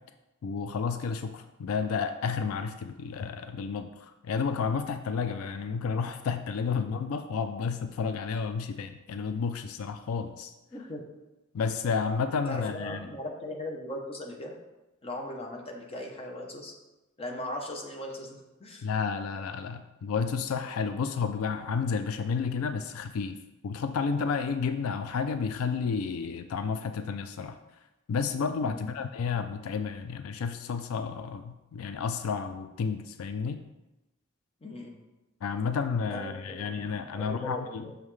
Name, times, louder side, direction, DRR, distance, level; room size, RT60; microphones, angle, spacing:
voice 1, 0.4-10.5 11.5-13.1 18.8-23.4 23.6-27.6 28.1-33.6 35.4-37.8, left 5 dB, 80° left, 9 dB, 0.4 m, -31 dB
voice 2, 10.7-11.0 12.5-14.5 15.0-16.7 17.2-18.9 28.6-28.8 34.6-35.0 36.1-38.0, left 1 dB, 30° left, 1 dB, 0.8 m, -39 dB
6.2 x 5.5 x 3.2 m, 1.0 s
head